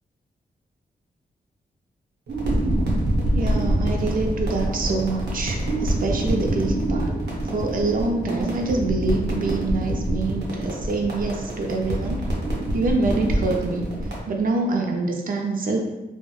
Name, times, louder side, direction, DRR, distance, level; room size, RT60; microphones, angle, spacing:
sound 1, 2.3-14.2, right 1 dB, 85° right, 0.7 m, -25 dB
voice 1, 3.3-7.1 7.5-12.3 12.7-13.9 14.3-15.8, right 3 dB, 60° right, 2 dB, 0.4 m, -25 dB
2.2 x 2.0 x 2.8 m, 1.0 s
wide cardioid pair, 125°, 17 cm